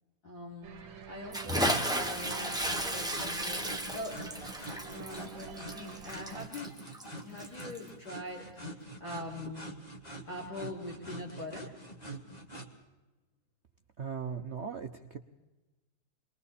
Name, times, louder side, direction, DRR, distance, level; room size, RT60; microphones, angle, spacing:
voice 1, 0.2-4.5 4.9-6.8 7.2-9.8 10.3-11.8, left 1 dB, 50° left, -4 dB, 3.6 m, -43 dB
sound 1, 0.6-6.5, right 7 dB, 75° right, 1.9 m, -48 dB
Bathtub (filling or washing) / Splash splatter, 1.3-7.9, right 1 dB, ahead, 1.1 m, -34 dB
sound 2, 1.6-12.7, right 1 dB, 20° left, 1.9 m, -45 dB
voice 2, 14.0-15.2, right 6 dB, 60° right, 6 dB, 0.7 m, -38 dB
28.0 x 22.0 x 4.2 m, 1.1 s
omnidirectional pair, 2.2 m